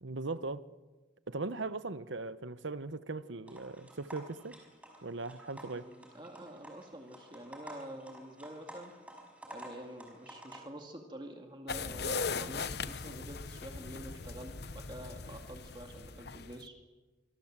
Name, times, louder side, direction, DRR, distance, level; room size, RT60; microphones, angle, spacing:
voice 1, 0.0-0.6 1.3-4.6 5.0-5.9, right 3 dB, 80° right, 1.0 m, -39 dB
sound 1, 3.5-10.6, right 1 dB, 5° right, 5.2 m, -51 dB
voice 2, 5.7-8.9 9.5-16.8, right 1 dB, 25° right, 2.2 m, -47 dB
sound 2, 11.7-16.7, left 4 dB, 55° left, 1.0 m, -39 dB
25.5 x 25.0 x 7.5 m
head